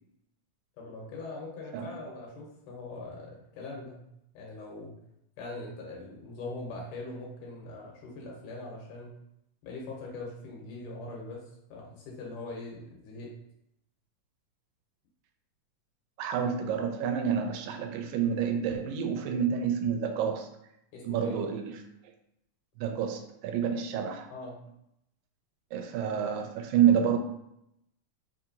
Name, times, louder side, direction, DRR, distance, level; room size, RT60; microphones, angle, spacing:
voice 1, 0.8-4.0 4.3-4.9 5.4-9.2 9.6-13.3 20.9-21.4 24.3-24.6, left 2 dB, 75° left, -2 dB, 2.2 m, -42 dB
voice 2, 16.2-20.5 21.0-21.8 22.8-24.3 25.7-27.2, right 8 dB, 85° right, 5 dB, 2.2 m, -28 dB
5.1 x 2.7 x 2.6 m, 0.79 s
omnidirectional pair, 3.9 m